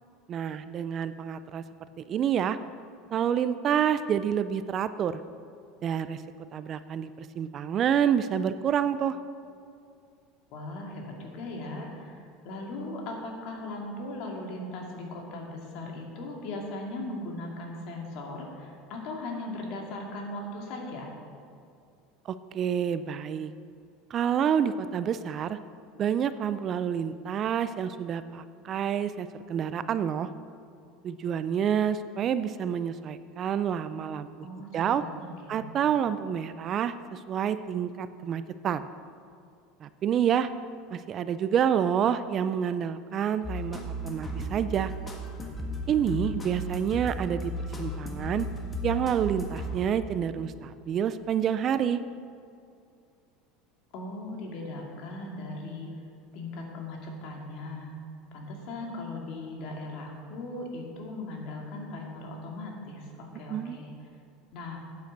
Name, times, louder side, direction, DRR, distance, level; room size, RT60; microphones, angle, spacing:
voice 1, 0.3-1.6 2.0-2.6 3.1-5.2 5.8-6.2 6.5-9.2 22.3-23.5 24.1-25.6 26.0-30.3 31.0-34.3 34.7-35.0 35.5-38.9 39.8-40.5 40.9-44.9 45.9-47.5 47.8-48.5 48.8-52.0 63.5-63.8, right 8 dB, 40° right, 13 dB, 0.4 m, -28 dB
voice 2, 10.5-21.1 34.4-35.7 53.9-55.9 56.3-57.9 58.3-63.9 64.5-64.8, left 2 dB, 60° left, 0 dB, 2.3 m, -38 dB
sound 1, 43.4-50.2, equal, 20° left, 1.6 m, -35 dB
9.2 x 7.9 x 6.8 m, 2.4 s
supercardioid pair, 120°, 0 cm